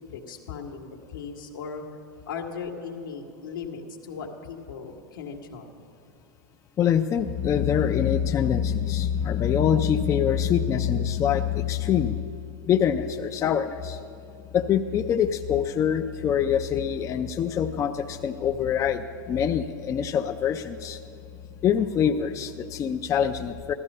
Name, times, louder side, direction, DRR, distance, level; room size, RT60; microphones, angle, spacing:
voice 1, 0.0-1.8 2.3-5.8, left 5 dB, 80° left, 2 dB, 1.6 m, -37 dB
voice 2, 6.8-12.2 12.7-14.0 14.5-21.0 21.6-23.7, left 8 dB, 30° left, 6 dB, 0.5 m, -24 dB
15.0 x 13.0 x 5.4 m, 2.5 s
hypercardioid pair, 105°, 11 cm